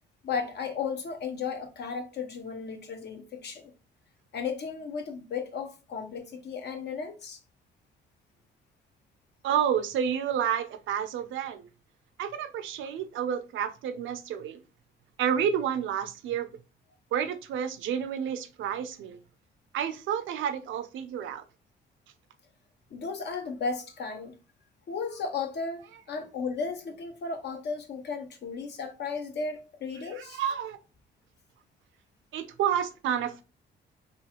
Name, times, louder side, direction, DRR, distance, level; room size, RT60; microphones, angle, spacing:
voice 1, 0.2-3.7 4.3-7.4 22.9-24.3 24.9-25.8 26.1-30.4, left 5 dB, 60° left, 0.8 m, -34 dB
voice 2, 9.4-11.7 12.2-14.6 15.2-16.5 17.1-19.2 19.7-21.4 30.1-30.8 32.3-33.4, right 8 dB, 75° right, 0.5 m, -30 dB
3.0 x 2.4 x 2.8 m
cardioid pair, 90°, 20 cm